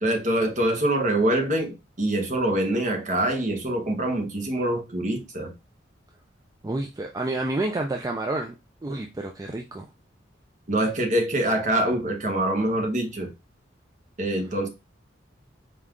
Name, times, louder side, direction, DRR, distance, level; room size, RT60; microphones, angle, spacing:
voice 1, 0.0-5.5 10.7-13.3 14.2-14.7, right 1 dB, 45° right, 1.0 m, -25 dB
voice 2, 6.6-8.5 8.8-9.9, right 2 dB, 20° right, 0.4 m, -29 dB
4.2 x 3.6 x 2.4 m
head